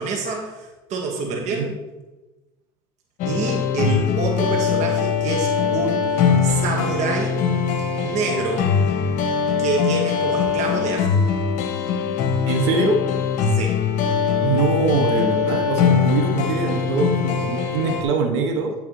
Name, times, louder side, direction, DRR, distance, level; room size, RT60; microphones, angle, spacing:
voice 1, 0.0-1.7 3.2-7.4 8.0-8.7 9.6-11.2 13.5-13.8, right 4 dB, 55° right, 1 dB, 1.5 m, -27 dB
voice 2, 1.3-1.7 12.5-13.0 14.4-18.7, right 4 dB, 90° right, 3 dB, 0.9 m, -23 dB
sound 1, 3.2-18.0, left 6 dB, 60° left, 1.0 m, -21 dB
10.5 x 5.6 x 3.1 m, 1.1 s
supercardioid pair, 100°, 14 cm